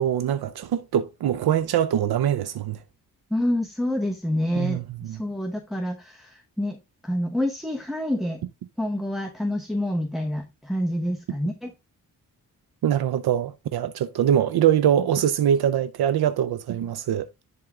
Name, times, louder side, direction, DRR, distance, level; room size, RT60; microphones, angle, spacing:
voice 1, 0.0-2.8 4.6-5.2 12.8-17.3, right 10 dB, 85° right, 0.6 m, -23 dB
voice 2, 3.3-8.4 8.8-11.7, left 1 dB, ahead, 0.9 m, -27 dB
11.0 x 3.7 x 3.6 m
wide cardioid pair, 110°, 37 cm